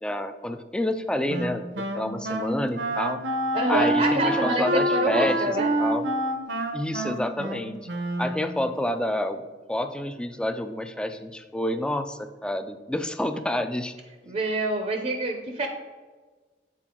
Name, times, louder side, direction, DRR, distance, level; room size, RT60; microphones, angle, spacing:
voice 1, 0.0-3.2 3.7-6.1 6.7-7.8 8.2-13.9, left 1 dB, 5° left, 9 dB, 0.3 m, -29 dB
Wind instrument woodwind instrument, 1.3-8.7, right 1 dB, 70° right, 0.7 m, -27 dB
voice 2, 3.5-5.7 14.3-15.7, right 1 dB, 40° right, 4 dB, 0.6 m, -26 dB
7.6 x 4.4 x 3.7 m, 1.4 s
head